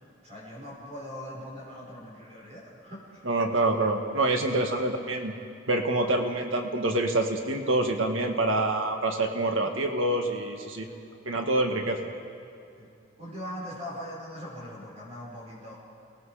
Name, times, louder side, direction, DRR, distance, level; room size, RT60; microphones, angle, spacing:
voice 1, 0.2-3.5 4.7-4.8 6.0-6.2 10.8-11.0 12.8-12.9 13.2-15.7, equal, 35° right, -5 dB, 5.5 m, -41 dB
voice 2, 3.2-5.3 5.7-10.9 11.3-12.1, right 2 dB, 90° right, 3 dB, 1.8 m, -26 dB
29.5 x 19.5 x 5.0 m, 2.4 s
head